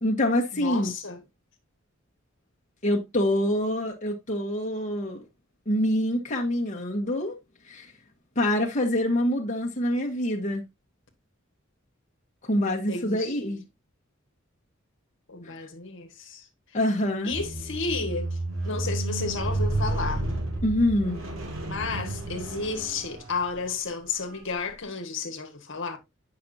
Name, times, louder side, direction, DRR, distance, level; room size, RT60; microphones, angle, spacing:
voice 1, 0.0-0.9 2.8-5.2 5.7-7.3 7.7-7.9 8.4-10.6 12.4-13.6 15.4-15.5 16.7-17.3 20.6-21.2, left 1 dB, 35° left, 1.2 m, -25 dB
voice 2, 0.5-1.2 12.9-13.6 15.3-16.5 17.2-18.4 18.6-20.3 21.7-26.0, left 4 dB, 65° left, 1.4 m, -32 dB
Squeak, 17.3-23.7 24.4-24.5, right 2 dB, 80° right, 2.4 m, -31 dB
8.5 x 5.9 x 2.6 m
head